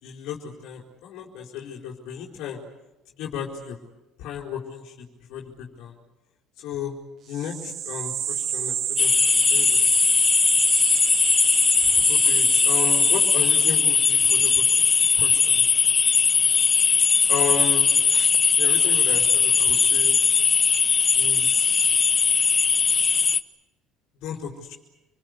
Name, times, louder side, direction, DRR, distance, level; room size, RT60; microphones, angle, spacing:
voice 1, 0.0-2.6 3.2-3.8 4.2-4.9 5.3-6.0 6.6-6.9 7.3-10.0 11.8-15.6 17.3-17.9 18.5-20.2 21.2-21.8 24.2-24.8, left 8 dB, 75° left, -1 dB, 4.7 m, -34 dB
sound 1, 7.3-13.9, right 9 dB, 50° right, 1.7 m, -28 dB
sound 2, 9.0-23.4, left 5 dB, 30° left, 1.1 m, -19 dB
29.0 x 22.0 x 8.2 m, 1.0 s
cardioid pair, 125°, 0 cm